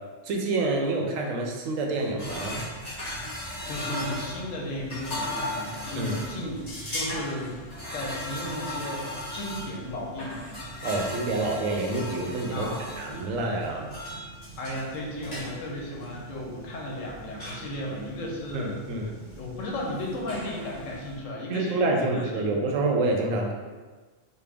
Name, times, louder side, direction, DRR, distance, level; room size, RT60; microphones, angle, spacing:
voice 1, 0.2-2.7 5.9-6.2 10.8-12.7 13.0-13.9 18.5-19.1 21.5-23.5, right 2 dB, 85° right, 1 dB, 1.0 m, -27 dB
sound 1, 2.2-21.2, left 1 dB, 35° left, 1.2 m, -37 dB
voice 2, 3.7-10.5 12.5-12.9 14.6-19.1 19.4-22.5, left 1 dB, 85° left, -2 dB, 1.1 m, -35 dB
4.4 x 2.1 x 3.4 m, 1.3 s
omnidirectional pair, 1.3 m